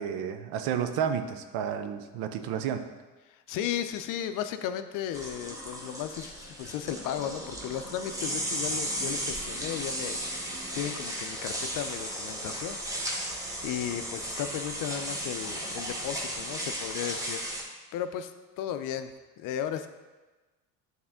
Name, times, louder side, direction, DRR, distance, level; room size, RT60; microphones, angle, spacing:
voice 1, 0.0-2.8, right 8 dB, 90° right, 8 dB, 0.6 m, -31 dB
voice 2, 3.3-10.2 10.4-12.8 13.6-17.5 17.9-18.3 18.6-19.9, left 10 dB, 65° left, 9 dB, 0.5 m, -35 dB
sound 1, 5.1-17.6, right 1 dB, 10° right, 1.0 m, -35 dB
sound 2, 7.2-16.7, right 4 dB, 35° right, 1.1 m, -51 dB
8.7 x 3.6 x 3.6 m, 1.2 s
cardioid pair, 115°, 34 cm